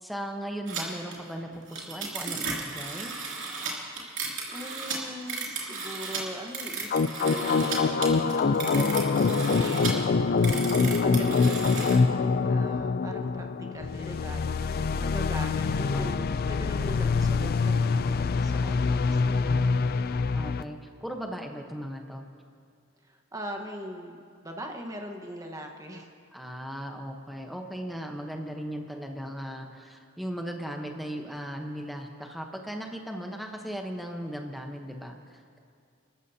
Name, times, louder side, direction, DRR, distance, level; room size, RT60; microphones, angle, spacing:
voice 1, 0.0-3.1 9.8-10.9 15.9-16.4 19.5-19.7 20.3-22.3 26.3-35.6, equal, ahead, 2 dB, 1.0 m, -37 dB
sound 1, 0.7-0.8 1.1-1.2 1.5-7.8 8.0-9.9 10.4-12.0, right 5 dB, 65° right, 2.8 m, -34 dB
voice 2, 4.0-19.7 23.0-26.1, equal, 15° right, 3 dB, 1.3 m, -41 dB
sound 2, 6.9-20.6, left 4 dB, 50° left, 0.4 m, -25 dB
29.5 x 13.5 x 2.8 m, 2.3 s
head